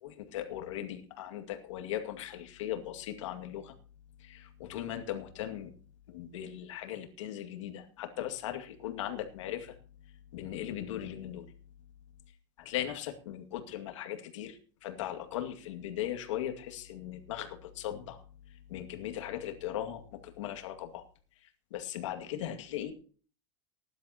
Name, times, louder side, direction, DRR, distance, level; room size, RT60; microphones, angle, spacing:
voice 1, 0.0-3.7 4.3-5.7 6.1-9.7 10.3-11.4 12.7-14.6 14.8-18.2 18.7-20.0 20.4-21.0 21.7-22.9, left 11 dB, 85° left, 5 dB, 2.2 m, -38 dB
19.0 x 11.5 x 2.9 m, 0.41 s
supercardioid pair, 170°, 16 cm